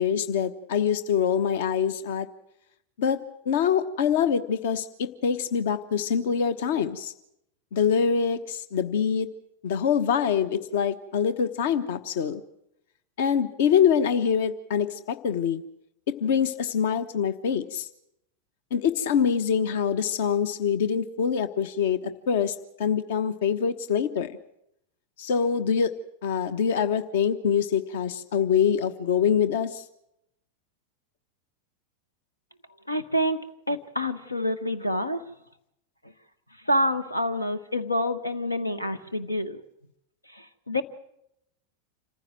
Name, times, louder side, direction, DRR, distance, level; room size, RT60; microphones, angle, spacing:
voice 1, 0.0-2.3 3.0-7.1 7.7-9.3 9.6-12.4 13.2-15.6 16.2-17.9 18.7-24.3 25.2-25.9 26.2-29.8, left 7 dB, 55° left, 12 dB, 1.1 m, -25 dB
voice 2, 32.9-33.4 33.7-35.2 36.7-39.6 40.3-40.8, equal, 85° left, 13 dB, 1.1 m, -27 dB
27.0 x 15.0 x 7.7 m, 0.80 s
figure-of-eight pair, 90°, 0 cm